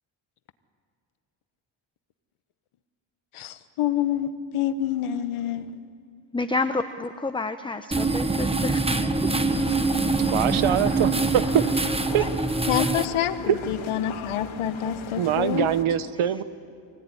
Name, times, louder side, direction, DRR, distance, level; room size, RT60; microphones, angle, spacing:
voice 1, 3.3-5.8 12.7-15.7, left 10 dB, 90° left, 11 dB, 1.3 m, -27 dB
voice 2, 6.3-9.1 12.1-12.3, left 3 dB, 10° left, 8 dB, 0.8 m, -29 dB
sound 1, 7.9-13.0, right 3 dB, 10° right, 1.2 m, -24 dB
sound 2, 9.5-15.8, left 7 dB, 75° left, 1.9 m, -39 dB
voice 3, 10.3-11.7 12.1-12.3 13.5-13.6 15.2-16.4, right 10 dB, 75° right, 14 dB, 1.1 m, -23 dB
25.0 x 17.0 x 9.8 m, 2.5 s
cardioid pair, 95°, 48 cm